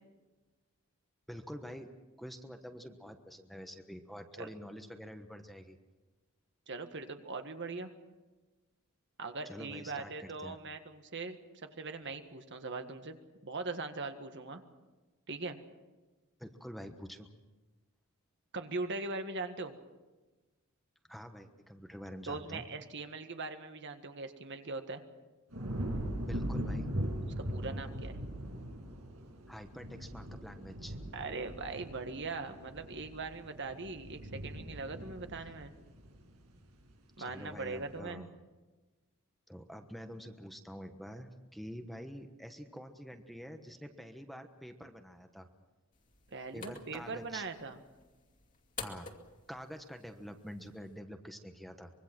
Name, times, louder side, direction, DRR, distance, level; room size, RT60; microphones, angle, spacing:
voice 1, 1.3-1.9 2.2-5.8 9.4-10.6 16.4-17.3 21.1-22.7 26.2-26.9 29.5-31.0 37.2-38.3 39.5-45.5 46.5-47.5 48.8-49.2 49.5-51.9, equal, ahead, 6 dB, 1.2 m, -47 dB
voice 2, 6.7-7.9 9.2-11.4 11.8-13.2 13.4-14.6 15.3-15.6 18.5-19.7 22.3-25.0 27.2-28.2 31.1-35.7 37.2-38.3 46.3-47.8, right 3 dB, 55° right, 7 dB, 1.7 m, -40 dB
sound 1, 25.5-36.8 37.2-37.7, equal, 85° right, 5.9 m, -40 dB
sound 2, 45.9-50.9, left 5 dB, 35° left, 2.4 m, -50 dB
25.0 x 22.5 x 6.2 m, 1.2 s
head